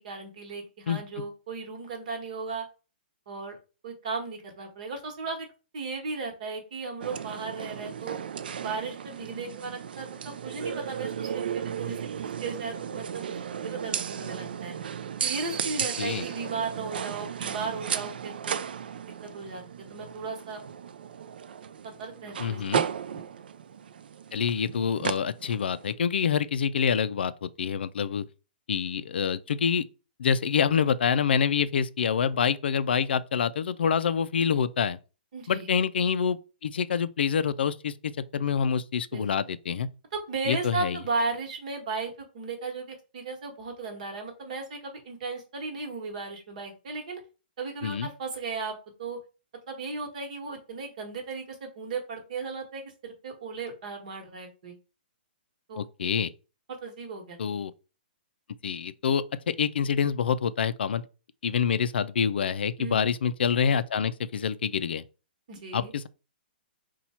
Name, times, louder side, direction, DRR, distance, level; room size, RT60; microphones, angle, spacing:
voice 1, 0.0-2.7 3.3-3.6 3.8-5.5 5.7-8.2 8.6-13.4 13.6-14.8 15.2-18.6 19.2-19.6 19.9-20.6 21.8-23.2 35.3-35.7 39.1-39.3 40.1-47.2 47.6-49.2 49.7-54.8 55.7-55.8 56.7-57.4 62.8-63.1 65.5-65.9, right 4 dB, 45° right, 1.2 m, -36 dB
sound 1, 7.0-25.9, right 8 dB, 65° right, 0.4 m, -35 dB
voice 2, 22.4-22.8 24.3-28.2 28.7-29.8 30.2-35.0 35.5-39.9 40.5-41.0 47.8-48.1 55.8-56.3 57.4-57.7 58.6-61.0 61.4-65.0 65.7-66.1, left 7 dB, 80° left, 0.4 m, -26 dB
4.2 x 2.3 x 4.2 m
hypercardioid pair, 170°, 6 cm